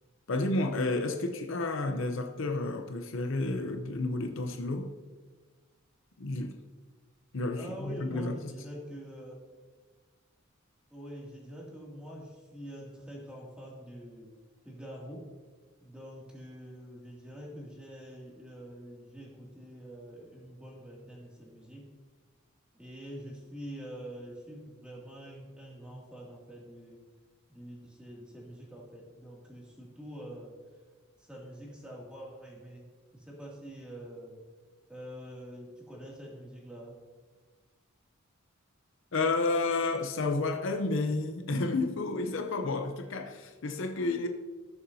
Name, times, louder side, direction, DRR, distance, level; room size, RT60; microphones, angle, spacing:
voice 1, 0.3-4.9 6.2-6.6 7.3-8.5 39.1-44.3, left 2 dB, 65° left, 0.7 m, -31 dB
voice 2, 7.6-9.4 10.9-14.3 14.6-15.2 15.8-21.8 22.7-27.0 27.5-30.5 31.2-34.4 34.9-36.9, equal, 5° right, 2.4 m, -45 dB
17.5 x 6.9 x 2.7 m
head